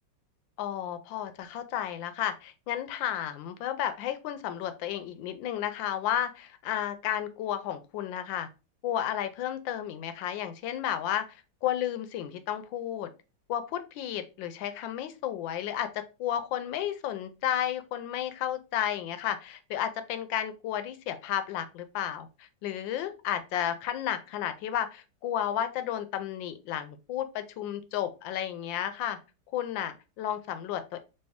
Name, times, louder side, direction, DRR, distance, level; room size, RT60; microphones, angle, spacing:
voice 1, 0.6-8.5 8.8-13.1 13.5-29.2 29.5-31.0, left 10 dB, 80° left, 10 dB, 1.3 m, -32 dB
3.2 x 2.9 x 3.4 m, 0.30 s
omnidirectional pair, 2.1 m